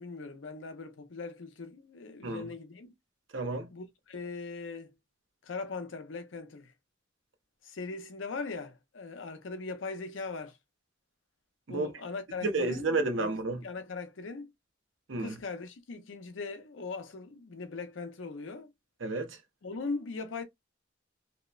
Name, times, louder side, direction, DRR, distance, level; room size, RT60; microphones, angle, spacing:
voice 1, 0.0-2.9 3.7-4.9 5.4-6.7 7.6-10.6 11.7-12.9 13.2-13.3 13.6-14.5 15.2-18.7 19.6-20.4, left 4 dB, 75° left, 0.6 m, -40 dB
voice 2, 3.3-3.7 11.7-11.9 12.4-13.6 15.1-15.3 19.0-19.4, right 3 dB, 75° right, 0.7 m, -31 dB
2.8 x 2.0 x 2.3 m
head